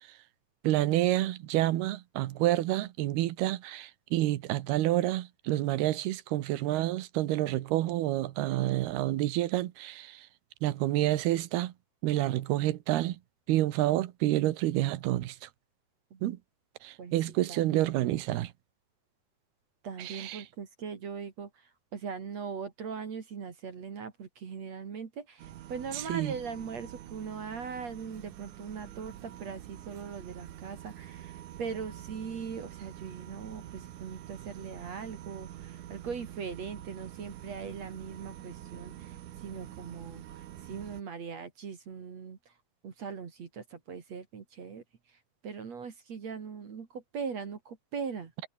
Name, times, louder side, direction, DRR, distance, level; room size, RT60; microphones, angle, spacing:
voice 1, 0.6-10.3 10.6-11.7 12.0-13.2 13.5-15.5 16.2-16.4 16.8-18.5 20.0-20.4 25.9-26.3, right 15 dB, 90° right, 3.2 m, -28 dB
voice 2, 17.5-18.1 19.8-39.2 39.4-42.5 42.8-44.8 45.4-48.3, right 6 dB, 45° right, 3.4 m, -40 dB
sound 1, 25.4-41.0, right 12 dB, 65° right, 2.5 m, -46 dB
omnidirectional pair, 4.4 m